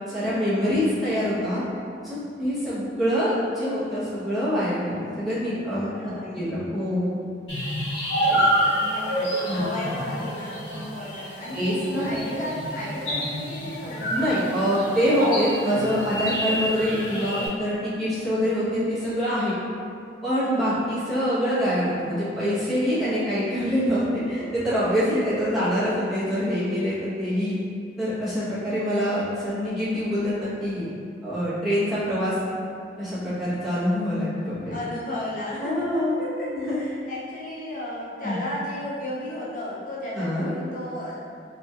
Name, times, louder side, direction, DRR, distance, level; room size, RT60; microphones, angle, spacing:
voice 1, 0.1-1.6 2.0-7.1 8.3-8.4 9.2-9.6 11.5-12.1 14.1-19.5 20.2-27.6 28.0-30.9 31.2-32.4 33.0-34.7 35.6-36.2 36.5-36.8 38.2-38.4 40.1-40.5, equal, ahead, -13 dB, 1.0 m, -25 dB
voice 2, 5.8-6.5 8.2-14.7 20.4-20.8 34.4-41.1, left 1 dB, 50° left, -7 dB, 0.4 m, -35 dB
sound 1, 7.5-17.5, equal, 85° left, 1.0 m, -28 dB
2.9 x 2.7 x 2.3 m, 2.4 s
head